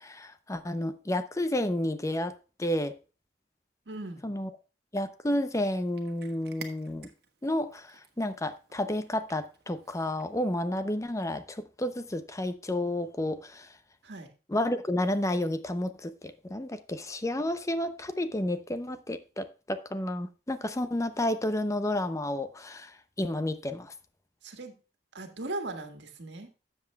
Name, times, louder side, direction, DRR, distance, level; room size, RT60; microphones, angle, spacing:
voice 1, 0.0-2.3 2.6-2.9 4.2-4.5 4.9-7.1 7.4-13.8 14.5-23.9, left 1 dB, 20° left, 11 dB, 0.6 m, -31 dB
voice 2, 3.8-4.3 14.0-14.3 24.4-24.7 25.1-26.6, right 2 dB, 80° right, 5 dB, 1.7 m, -38 dB
Cat, 5.3-10.5, right 6 dB, 65° right, 1.5 m, -53 dB
13.0 x 7.8 x 2.3 m, 0.33 s
head